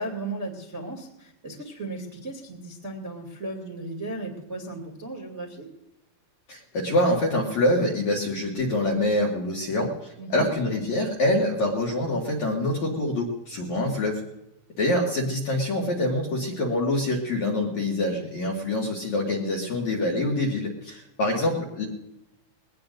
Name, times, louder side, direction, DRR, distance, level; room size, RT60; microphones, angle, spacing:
voice 1, 0.0-5.7 10.2-10.5, right 2 dB, 25° right, -1 dB, 1.5 m, -35 dB
voice 2, 6.5-14.2 14.8-21.9, left 1 dB, 50° left, -3 dB, 2.4 m, -25 dB
21.5 x 18.5 x 2.6 m, 0.88 s
omnidirectional pair, 5.6 m